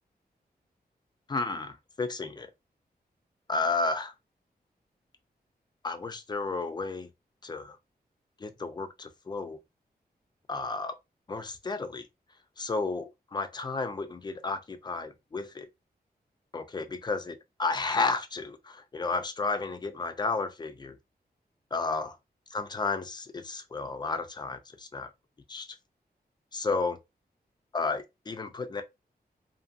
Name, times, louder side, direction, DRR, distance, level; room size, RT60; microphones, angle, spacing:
voice 1, 1.3-2.5 3.5-4.1 5.8-7.1 7.4-7.8 8.4-9.6 10.5-11.0 11.3-12.0 12.6-15.7 16.5-21.0 21.7-22.2 22.5-25.1 25.5-25.8 26.5-27.0 27.7-28.8, left 3 dB, 25° left, 0.4 m, -32 dB
2.6 x 2.5 x 2.4 m
wide cardioid pair, 180°, 17 cm